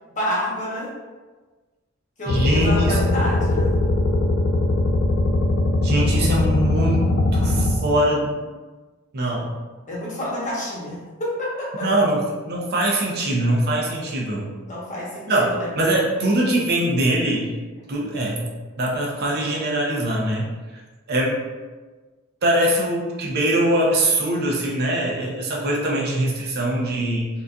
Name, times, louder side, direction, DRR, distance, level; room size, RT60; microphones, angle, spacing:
voice 1, 0.1-0.9 2.2-3.7 9.9-11.9 14.6-15.7, equal, 35° left, -6 dB, 0.9 m, -28 dB
sound 1, 2.3-7.8, left 2 dB, 65° left, 0.4 m, -20 dB
voice 2, 2.3-3.1 5.8-8.4 9.1-9.5 11.8-14.5 15.3-17.5 17.9-20.5 21.1-21.4 22.4-27.3, right 1 dB, 50° right, -3 dB, 0.6 m, -22 dB
3.9 x 2.5 x 2.3 m, 1.3 s
head